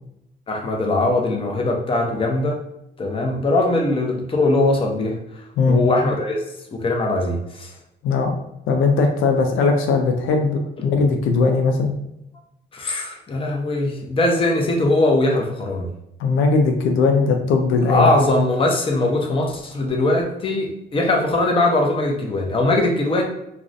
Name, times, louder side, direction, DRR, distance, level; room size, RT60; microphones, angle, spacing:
voice 1, 0.5-2.6 3.0-6.4 6.7-7.7 12.7-15.9 17.9-23.2, left 2 dB, 25° left, 1 dB, 0.5 m, -21 dB
voice 2, 8.7-11.9 16.2-18.1, left 4 dB, 80° left, 3 dB, 0.4 m, -19 dB
2.4 x 2.1 x 2.5 m, 0.83 s
cardioid pair, 90°, 20 cm